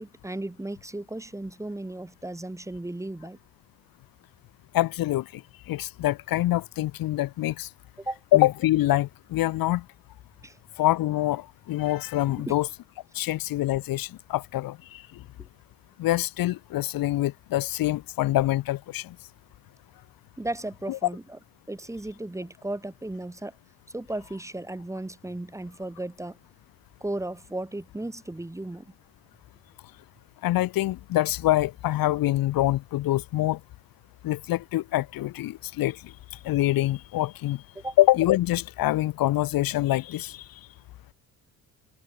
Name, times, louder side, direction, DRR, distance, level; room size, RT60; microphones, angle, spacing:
voice 1, 0.0-3.4 8.0-8.2 10.4-10.6 12.4-12.5 15.4-15.5 20.4-21.4 21.7-23.5 23.9-26.4 27.0-28.9 37.8-38.0, right 1 dB, 10° right, 5.7 m, -35 dB
voice 2, 4.7-5.4 5.7-7.7 8.3-9.8 10.8-12.7 13.1-15.0 16.0-19.1 20.9-21.0 30.4-33.6 34.2-36.0 36.4-37.6 38.0-40.4, left 15 dB, 80° left, 2.9 m, -25 dB
cardioid pair, 125°, 34 cm